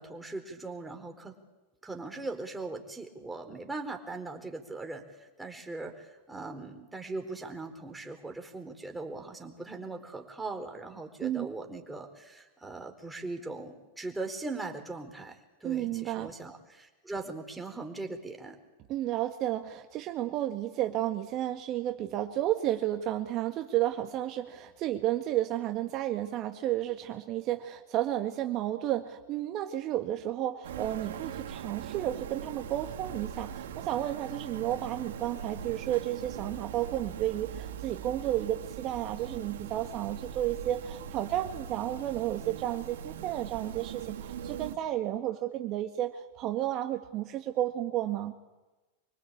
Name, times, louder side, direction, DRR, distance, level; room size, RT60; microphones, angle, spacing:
voice 1, 0.0-1.3 1.8-18.6, right 3 dB, 10° right, 4 dB, 4.3 m, -40 dB
voice 2, 11.2-11.5 15.6-16.3 18.9-48.3, right 13 dB, 40° right, 5 dB, 1.8 m, -32 dB
sound 1, 30.6-44.7, right 8 dB, 70° right, 2.3 m, -41 dB
25.0 x 24.5 x 8.8 m, 1.2 s
hypercardioid pair, 95°, 0 cm